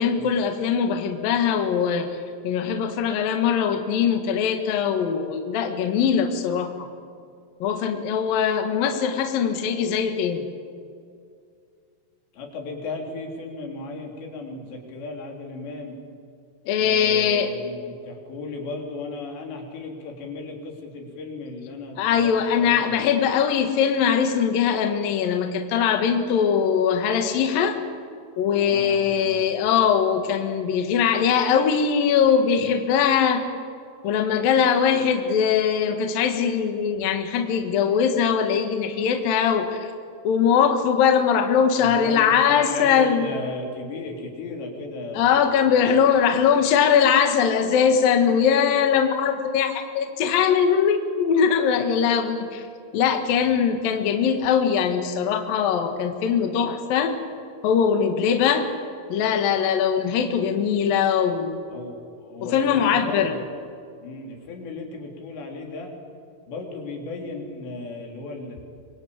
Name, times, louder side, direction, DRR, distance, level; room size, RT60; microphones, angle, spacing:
voice 1, 0.0-2.2 2.4-6.9 7.6-10.5 16.7-17.5 22.0-27.8 28.4-33.4 34.0-39.9 40.2-43.3 45.1-52.6 52.9-57.1 57.6-58.7 59.1-61.6 62.4-63.3, left 7 dB, 65° left, 5 dB, 3.1 m, -21 dB
voice 2, 12.3-16.0 16.8-23.1 28.5-29.5 41.8-45.4 46.3-46.5 61.7-63.4 64.0-65.9 66.5-68.6, left 3 dB, 90° left, 1 dB, 5.9 m, -35 dB
25.5 x 24.0 x 8.7 m, 2.3 s
omnidirectional pair, 4.8 m